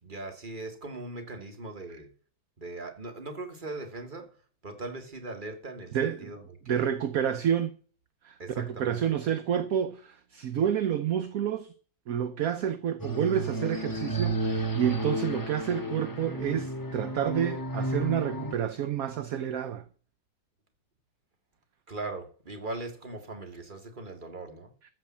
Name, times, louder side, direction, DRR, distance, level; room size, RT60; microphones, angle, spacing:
voice 1, 0.0-2.1 2.6-4.4 4.6-6.8 8.4-9.2 21.9-24.7, right 2 dB, 25° right, 2.1 m, -40 dB
voice 2, 5.9-6.3 6.7-7.7 8.2-11.7 12.1-19.8, right 9 dB, 60° right, 1.1 m, -29 dB
sound 1, 13.0-18.5, right 1 dB, 15° left, 0.8 m, -32 dB
14.0 x 5.8 x 7.3 m
omnidirectional pair, 1.9 m